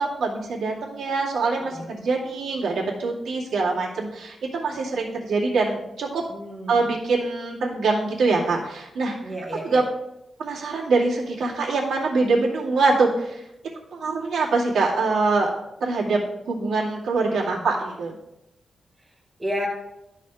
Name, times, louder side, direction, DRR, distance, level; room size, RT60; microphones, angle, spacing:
voice 1, 0.0-6.2 6.7-9.3 9.6-9.8 10.4-13.4 13.9-15.5 15.8-16.2 16.5-18.2, right 3 dB, 90° right, -5 dB, 2.4 m, -24 dB
voice 2, 1.6-2.0 6.3-6.9 9.2-9.8 17.3-17.6 19.4-19.7, equal, 15° right, -3 dB, 1.7 m, -32 dB
13.0 x 4.3 x 3.6 m, 0.87 s
wide cardioid pair, 165°, 0 cm